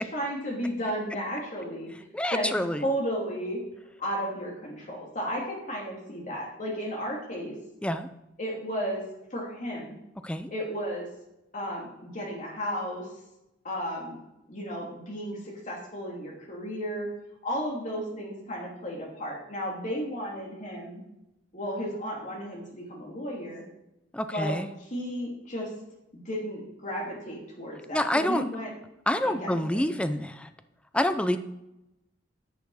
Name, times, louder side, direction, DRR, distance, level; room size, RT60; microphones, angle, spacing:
voice 1, 0.1-1.9 2.3-2.6 2.8-3.6 4.0-7.5 8.4-9.0 9.3-10.0 10.5-11.1 11.5-13.1 13.6-14.2 14.5-17.1 17.4-21.0 21.5-23.6 24.3-24.5 24.9-25.7 26.1-28.7 29.2-29.8, equal, 40° left, -2 dB, 2.8 m, -33 dB
voice 2, 2.1-2.9 7.8-8.1 10.2-10.5 24.1-24.7 27.9-28.4 29.1-30.5 30.9-31.4, left 1 dB, 5° left, 10 dB, 0.5 m, -27 dB
10.5 x 6.8 x 4.1 m, 0.91 s
head